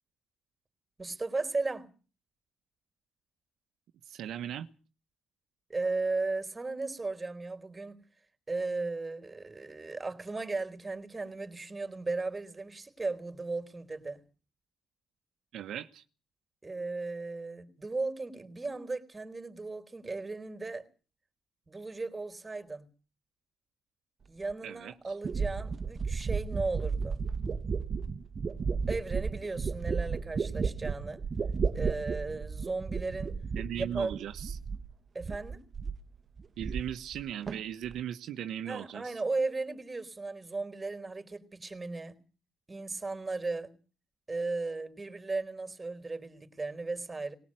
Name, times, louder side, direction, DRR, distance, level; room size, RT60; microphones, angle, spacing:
voice 1, 1.0-1.9 5.7-8.0 8.5-14.2 16.6-20.9 21.7-22.9 24.3-27.2 28.9-31.2 31.7-33.4 33.8-34.2 35.1-35.7 38.7-42.1 42.7-43.7 44.3-47.3, right 3 dB, 20° right, 4.1 m, -36 dB
voice 2, 4.0-4.7 15.5-16.0 24.6-25.1 33.5-34.6 36.6-39.2, right 10 dB, 75° right, 1.2 m, -38 dB
sound 1, 24.5-24.6 25.2-34.9 35.2-36.1 36.4-37.2 37.5-38.0, right 5 dB, 40° right, 1.5 m, -33 dB
20.0 x 18.0 x 7.7 m
cardioid pair, 85°, 0 cm